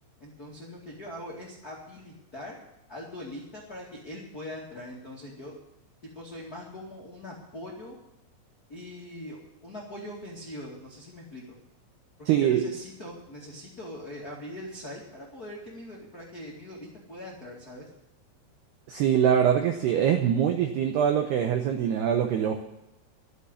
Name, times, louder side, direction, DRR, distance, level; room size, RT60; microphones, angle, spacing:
voice 1, 0.2-2.5 2.9-5.6 6.1-8.0 8.7-11.6 12.3-17.9, left 1 dB, 45° left, -4 dB, 1.1 m, -42 dB
voice 2, 12.3-12.6 18.9-22.6, right 9 dB, 90° right, 5 dB, 2.3 m, -23 dB
12.5 x 7.3 x 9.8 m, 0.92 s
omnidirectional pair, 5.9 m